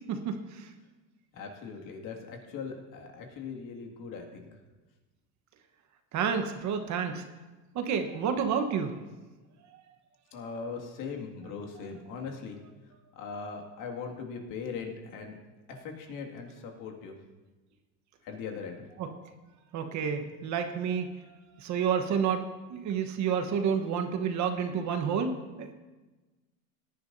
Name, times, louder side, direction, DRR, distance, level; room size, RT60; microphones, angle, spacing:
voice 1, 0.1-0.7 6.1-7.2 7.7-8.9 19.0-19.1 19.7-21.1 21.6-22.4 22.7-25.7, right 7 dB, 45° right, 6 dB, 1.2 m, -29 dB
voice 2, 1.3-4.5 10.3-12.6 13.2-15.4 15.7-17.2 18.2-18.9, left 5 dB, 50° left, 2 dB, 2.2 m, -40 dB
17.0 x 10.5 x 2.7 m, 1.2 s
supercardioid pair, 115°, 40 cm